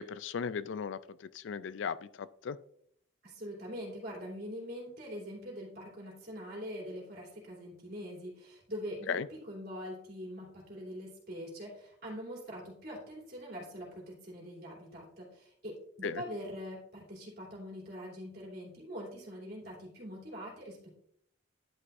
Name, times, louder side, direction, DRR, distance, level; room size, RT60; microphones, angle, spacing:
voice 1, 0.0-2.6 9.1-9.3 16.0-16.2, left 6 dB, 70° left, 16 dB, 0.4 m, -37 dB
voice 2, 3.2-20.9, equal, 50° right, -2 dB, 3.1 m, -43 dB
11.0 x 5.9 x 2.6 m, 0.67 s
head